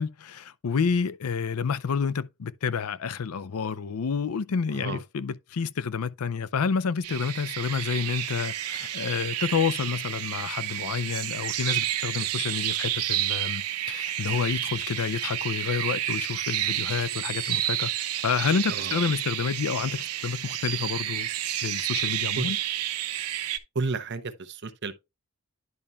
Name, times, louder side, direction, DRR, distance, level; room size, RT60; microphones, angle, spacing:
voice 1, 0.0-17.9 18.2-21.3 21.6-22.6, left 6 dB, 80° left, 0.5 m, -29 dB
voice 2, 4.7-5.0 18.7-19.0 22.4-22.6 23.7-24.9, right 3 dB, 50° right, 0.8 m, -32 dB
sound 1, 7.0-23.6, right 12 dB, 85° right, 0.7 m, -30 dB
10.5 x 5.4 x 2.3 m
head